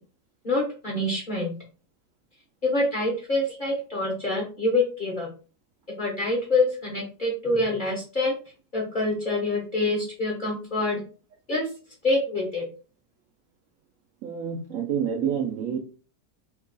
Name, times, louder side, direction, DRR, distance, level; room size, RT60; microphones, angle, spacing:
voice 1, 0.4-1.5 2.6-5.3 6.0-8.3 8.7-11.0 11.5-11.7 12.0-12.6, left 2 dB, 40° left, -3 dB, 0.7 m, -26 dB
voice 2, 14.2-15.8, right 8 dB, 70° right, 1 dB, 0.7 m, -28 dB
3.0 x 2.3 x 3.7 m, 0.36 s
omnidirectional pair, 1.8 m